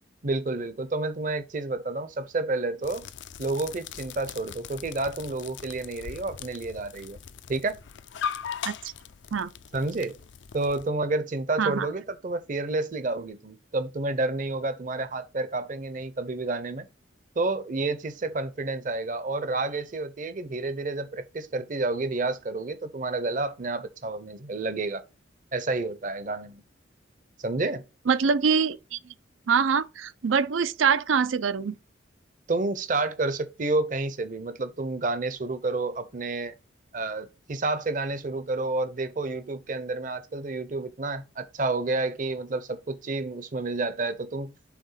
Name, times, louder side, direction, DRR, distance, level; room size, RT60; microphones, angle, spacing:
voice 1, 0.2-3.1 3.4-7.2 7.5-7.8 9.7-10.2 10.5-16.9 17.4-25.0 25.5-26.6 27.4-27.8 32.5-36.5 36.9-44.5, right 2 dB, 40° right, 0.7 m, -30 dB
sound 1, 2.8-10.9, left 8 dB, 65° left, 0.4 m, -40 dB
voice 2, 28.1-29.0 29.5-31.7, right 6 dB, 85° right, 0.5 m, -24 dB
5.9 x 3.6 x 5.6 m
head